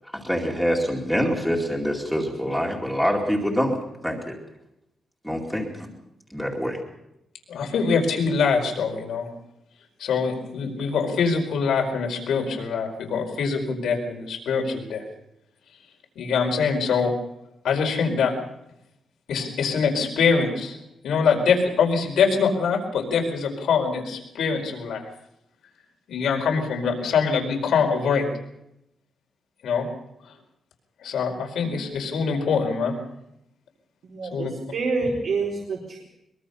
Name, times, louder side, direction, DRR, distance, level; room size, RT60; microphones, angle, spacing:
voice 1, 0.1-4.4 5.2-5.9 6.3-6.8, equal, ahead, -1 dB, 2.4 m, -25 dB
voice 2, 7.5-9.3 10.0-15.0 16.1-17.1 17.6-18.3 19.3-20.8 21.0-25.0 26.1-28.3 29.6-29.9 30.2-30.3 31.0-32.9 34.3-34.5, left 5 dB, 85° left, 3 dB, 4.8 m, -24 dB
voice 3, 34.1-36.0, right 3 dB, 60° right, -2 dB, 4.4 m, -27 dB
23.0 x 22.5 x 5.7 m, 0.82 s
wide cardioid pair, 170°, 0 cm